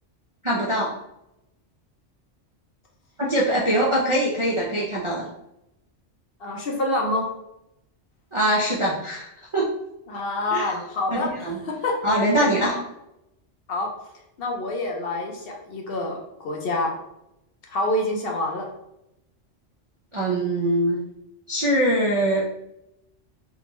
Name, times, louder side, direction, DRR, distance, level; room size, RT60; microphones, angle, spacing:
voice 1, 0.4-1.0 3.2-5.3 8.3-9.7 10.5-10.7 11.1-11.6 12.0-12.8 20.1-21.0 21.5-22.5, right 1 dB, 45° right, -6 dB, 0.4 m, -23 dB
voice 2, 6.4-7.3 10.1-12.0 13.7-13.9 14.4-16.9 17.7-18.7, left 2 dB, 60° left, 0 dB, 0.7 m, -27 dB
3.6 x 2.1 x 2.9 m, 0.85 s
omnidirectional pair, 1.2 m